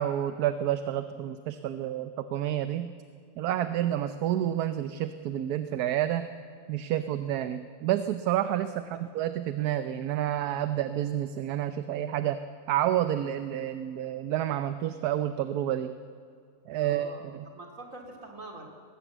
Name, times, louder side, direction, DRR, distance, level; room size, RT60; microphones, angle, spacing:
voice 1, 0.0-2.9 3.4-6.3 6.7-12.4 12.7-16.0 16.7-17.5, right 11 dB, 80° right, 11 dB, 1.2 m, -29 dB
voice 2, 16.8-18.6, right 2 dB, 55° right, 3 dB, 3.0 m, -45 dB
19.5 x 17.0 x 8.0 m, 2.3 s
omnidirectional pair, 1.7 m